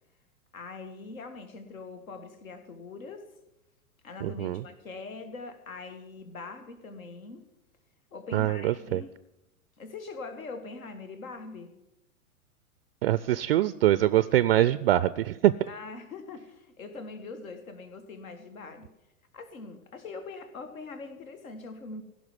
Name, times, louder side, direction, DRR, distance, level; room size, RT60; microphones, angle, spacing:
voice 1, 0.5-3.3 4.0-7.5 8.1-9.1 9.8-11.8 15.7-18.9 19.3-22.0, left 3 dB, 65° left, 8 dB, 1.8 m, -42 dB
voice 2, 4.2-4.6 8.3-9.0 13.0-15.5, right 14 dB, 45° right, 16 dB, 0.4 m, -24 dB
16.0 x 6.1 x 9.7 m, 0.90 s
figure-of-eight pair, 100°, 44 cm